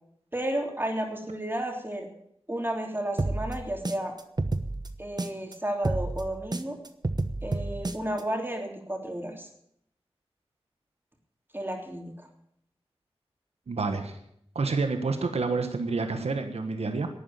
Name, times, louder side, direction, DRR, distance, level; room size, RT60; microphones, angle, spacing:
voice 1, 0.3-2.1 2.5-4.1 5.0-6.8 7.4-9.5 11.5-12.3, right 1 dB, 20° right, 2 dB, 3.3 m, -32 dB
sound 1, 3.2-5.5 5.8-8.2, right 2 dB, 40° right, 1.1 m, -30 dB
voice 2, 13.7-14.2 14.5-17.1, right 4 dB, 90° right, 7 dB, 1.4 m, -28 dB
12.0 x 9.0 x 9.1 m, 0.73 s
cardioid pair, 45°, 10 cm